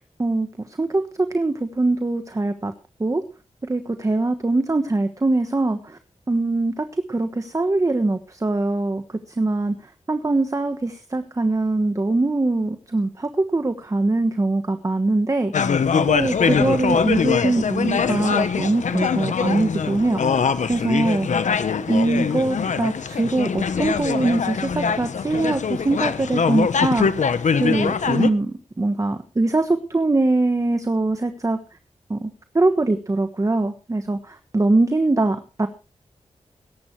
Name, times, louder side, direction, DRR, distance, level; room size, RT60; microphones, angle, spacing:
voice 1, 0.2-2.7 3.0-3.2 3.7-6.0 6.3-9.0 9.4-9.8 10.1-15.7 16.1-20.2 20.7-21.3 21.9-27.3 27.6-31.6 32.1-35.7, right 2 dB, 25° right, 8 dB, 1.2 m, -22 dB
sound 1, 15.5-28.3, left 6 dB, 80° left, 1.0 m, -22 dB
20.5 x 11.5 x 3.2 m, 0.32 s
wide cardioid pair, 90°, 12 cm